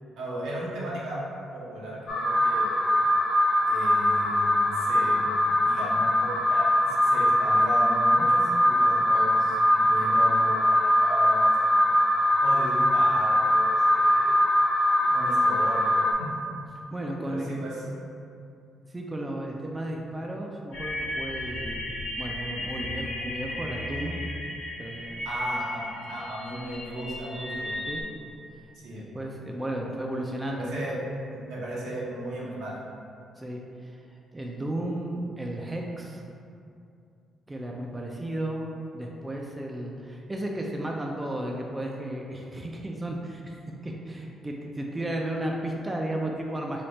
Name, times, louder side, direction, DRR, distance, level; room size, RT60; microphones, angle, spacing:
voice 1, 0.2-1.2 1.5-2.9 3.7-5.2 5.6-11.9 12.4-14.3 15.0-16.3 17.3-17.7 25.2-27.8 28.7-29.1 30.5-31.0 31.3-32.7, right 1 dB, 80° right, -6 dB, 0.9 m, -36 dB
Alarm, 2.1-16.1, left 1 dB, 60° left, 0.4 m, -22 dB
voice 2, 16.9-17.6 18.9-24.2 24.8-25.3 27.9-28.1 28.5-28.7 29.1-31.0 33.4-36.2 37.5-38.7 38.9-43.6 43.8-46.8, right 1 dB, 15° right, -1 dB, 0.4 m, -34 dB
sound 1, 20.7-28.0, left 1 dB, 80° left, 0.9 m, -35 dB
3.3 x 2.4 x 4.0 m, 2.5 s
cardioid pair, 90°, 0 cm